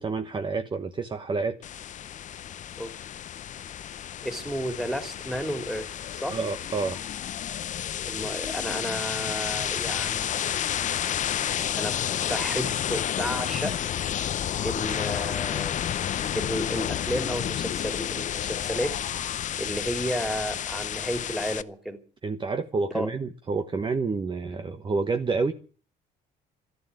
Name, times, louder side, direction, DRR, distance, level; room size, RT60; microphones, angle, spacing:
voice 1, 0.0-1.6 6.3-7.0 22.2-25.5, right 4 dB, 30° right, 1.1 m, -28 dB
sound 1, 1.6-21.6, left 10 dB, 45° left, 0.7 m, -31 dB
voice 2, 2.8-3.1 4.2-6.4 8.0-10.4 11.7-11.9 12.2-13.8 14.6-16.0 16.3-18.9 19.6-22.0 22.9-23.1, equal, ahead, 3.2 m, -32 dB
13.0 x 11.5 x 9.4 m
cardioid pair, 110°, 17 cm